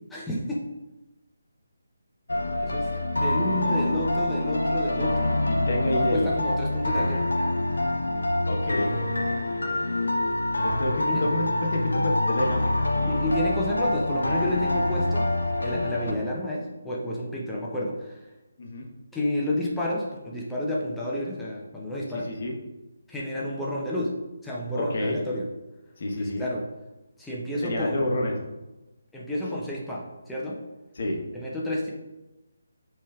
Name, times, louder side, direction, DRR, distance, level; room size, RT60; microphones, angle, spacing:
voice 1, 0.1-0.6 2.6-2.9 3.1-5.3 5.8-7.3 11.0-11.2 13.1-15.2 15.6-18.2 19.1-22.3 23.1-24.1 24.4-25.4 26.2-26.6 27.2-28.0 29.1-30.6 31.3-31.9, left 1 dB, 5° left, -6 dB, 0.6 m, -30 dB
sound 1, 2.3-16.1, left 1 dB, 75° left, 0.5 m, -26 dB
voice 2, 5.5-6.3 8.5-8.9 10.6-13.4 18.6-18.9 22.1-22.5 24.8-25.2 26.0-26.5 27.6-28.3 31.0-31.2, left 1 dB, 45° left, 0 dB, 0.9 m, -29 dB
5.1 x 3.2 x 2.3 m, 1.0 s
figure-of-eight pair, 150°, 0 cm